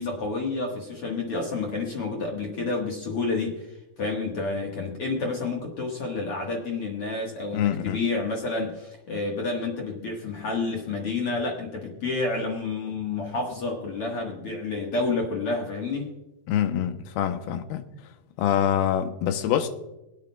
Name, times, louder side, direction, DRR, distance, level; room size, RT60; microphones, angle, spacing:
voice 1, 0.0-16.1, left 3 dB, 50° left, 1.9 m, -29 dB
voice 2, 7.5-8.0 16.5-17.8 18.4-19.7, left 10 dB, 90° left, 2.8 m, -25 dB
24.0 x 8.9 x 2.3 m
omnidirectional pair, 4.3 m